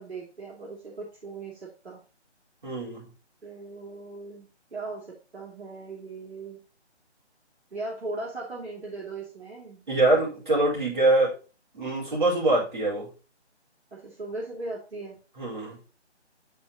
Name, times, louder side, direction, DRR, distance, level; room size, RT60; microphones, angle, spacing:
voice 1, 0.0-2.0 3.4-6.6 7.7-9.8 13.9-15.2, right 3 dB, 65° right, -4 dB, 3.6 m, -38 dB
voice 2, 2.6-3.0 9.9-11.4 11.7-13.1 15.4-15.8, right 2 dB, 45° right, -4 dB, 4.7 m, -24 dB
11.0 x 4.4 x 3.0 m, 0.33 s
figure-of-eight pair, 175°, 35 cm